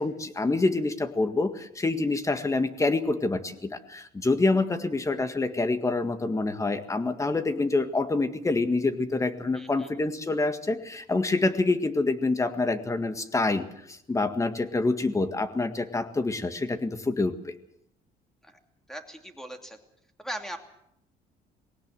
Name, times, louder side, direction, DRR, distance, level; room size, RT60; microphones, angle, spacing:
voice 1, 0.0-17.5, left 3 dB, 20° left, 9 dB, 1.8 m, -27 dB
voice 2, 9.5-9.9 18.4-18.6 18.9-19.8 20.2-20.6, right 1 dB, 5° left, 5 dB, 2.8 m, -39 dB
20.0 x 17.5 x 7.6 m, 0.75 s
cardioid pair, 110°, 17 cm